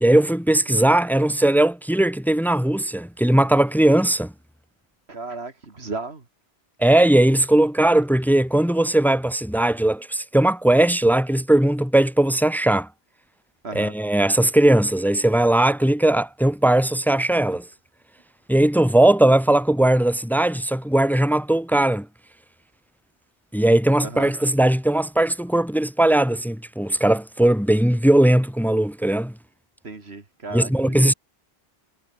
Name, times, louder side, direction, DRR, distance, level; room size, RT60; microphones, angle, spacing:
voice 1, 0.0-4.3 6.8-12.9 13.7-17.6 18.5-22.1 23.5-29.3 30.5-31.1, right 1 dB, ahead, 0.5 m, -19 dB
voice 2, 5.1-6.2 13.6-13.9 24.0-24.3 29.8-31.1, right 3 dB, 80° right, 2.8 m, -35 dB
omnidirectional pair, 1.1 m